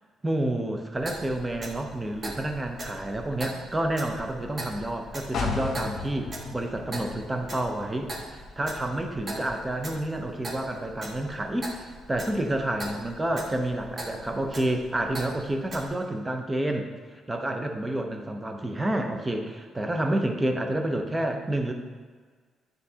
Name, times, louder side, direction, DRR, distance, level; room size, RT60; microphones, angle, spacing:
voice 1, 0.2-11.8 12.1-16.9 17.1-21.7, right 1 dB, 15° right, 4 dB, 0.7 m, -29 dB
Clock, 1.0-15.9, right 1 dB, 45° right, 1.5 m, -41 dB
sound 1, 5.3-9.1 9.5-9.6, left 5 dB, 65° left, 0.9 m, -35 dB
9.4 x 3.9 x 2.8 m, 1.5 s
cardioid pair, 90°, 0 cm